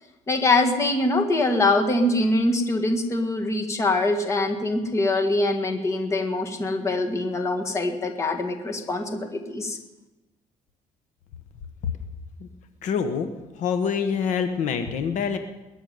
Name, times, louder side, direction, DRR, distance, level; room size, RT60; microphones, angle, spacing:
voice 1, 0.3-9.8, left 2 dB, 20° left, 5 dB, 1.7 m, -23 dB
voice 2, 12.8-13.3 13.5-15.4, left 6 dB, 60° left, 8 dB, 1.2 m, -25 dB
21.0 x 7.0 x 9.4 m, 1.0 s
cardioid pair, 165°, 14 cm